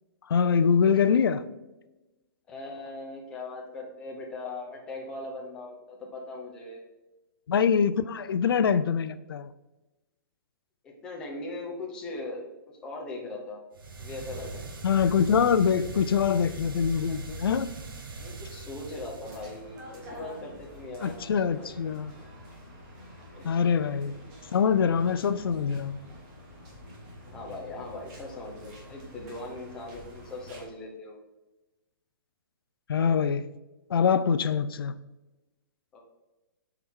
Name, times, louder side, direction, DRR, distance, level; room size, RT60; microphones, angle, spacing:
voice 1, 0.3-1.4 7.5-9.5 14.8-17.7 21.0-22.1 23.4-24.2 24.5-26.0 32.9-33.5 33.9-34.9, left 6 dB, 80° left, 0.5 m, -24 dB
voice 2, 2.5-6.8 10.8-13.6 14.0-14.6 18.2-21.7 23.3-23.6 27.3-31.2 35.9-36.0, left 2 dB, 5° left, 0.7 m, -40 dB
sound 1, 13.7-19.6, right 2 dB, 70° right, 1.3 m, -41 dB
sound 2, 19.2-30.7, equal, 20° right, 1.2 m, -47 dB
7.4 x 4.6 x 3.7 m
hypercardioid pair, 180°, 12 cm